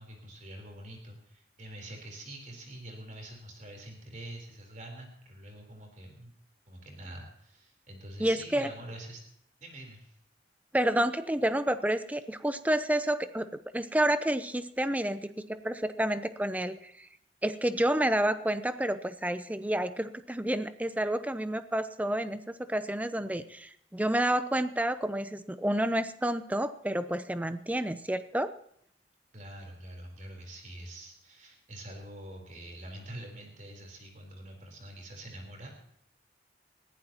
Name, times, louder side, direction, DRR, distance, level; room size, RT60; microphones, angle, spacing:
voice 1, 0.0-6.3 6.7-9.2 9.6-10.1 29.3-35.8, right 1 dB, 45° right, 2 dB, 3.8 m, -45 dB
voice 2, 8.2-8.7 10.7-17.1 17.4-28.5, right 1 dB, 10° right, 11 dB, 0.6 m, -29 dB
20.5 x 15.5 x 2.9 m, 0.71 s
head